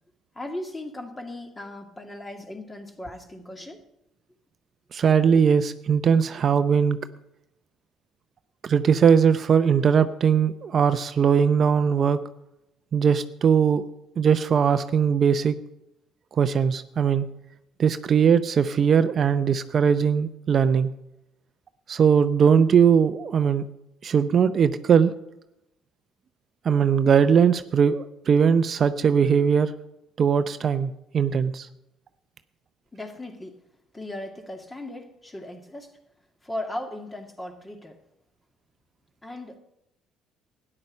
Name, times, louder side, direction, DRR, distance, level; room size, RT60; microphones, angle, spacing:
voice 1, 0.3-3.9 32.9-33.6 33.9-36.0 36.4-38.0 39.2-39.6, left 1 dB, 20° left, 5 dB, 2.2 m, -37 dB
voice 2, 4.9-7.0 8.6-12.2 12.9-13.8 14.2-15.5 16.3-17.3 17.8-20.9 21.9-23.6 24.0-25.1 26.6-29.7 30.2-31.7, right 7 dB, 50° right, 11 dB, 0.6 m, -20 dB
13.0 x 9.9 x 5.3 m, 0.87 s
supercardioid pair, 70°, 0 cm